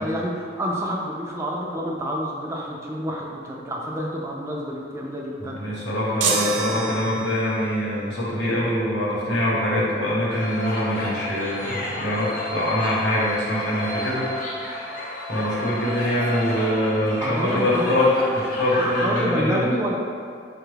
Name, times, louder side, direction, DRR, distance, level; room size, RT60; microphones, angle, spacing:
voice 1, 0.0-5.6 17.2-17.9 18.8-20.0, equal, 15° right, -3 dB, 0.3 m, -28 dB
voice 2, 5.4-14.3 14.7-14.8 15.3-19.7, left 1 dB, 70° left, -6 dB, 1.0 m, -24 dB
sound 1, 6.2-7.7, right 5 dB, 85° right, 0.4 m, -27 dB
sound 2, 10.3-19.3, left 1 dB, 50° left, 0.5 m, -32 dB
4.6 x 2.3 x 3.3 m, 2.2 s
head